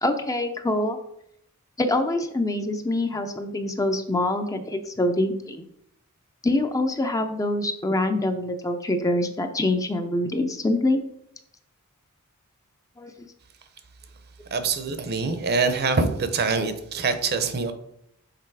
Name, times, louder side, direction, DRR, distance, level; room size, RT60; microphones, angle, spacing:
voice 1, 0.0-1.0 1.8-5.6 6.4-11.0 13.0-13.1, left 1 dB, 15° left, 7 dB, 0.5 m, -25 dB
voice 2, 14.5-17.7, right 4 dB, 45° right, 9 dB, 0.7 m, -24 dB
6.7 x 3.9 x 4.7 m, 0.74 s
head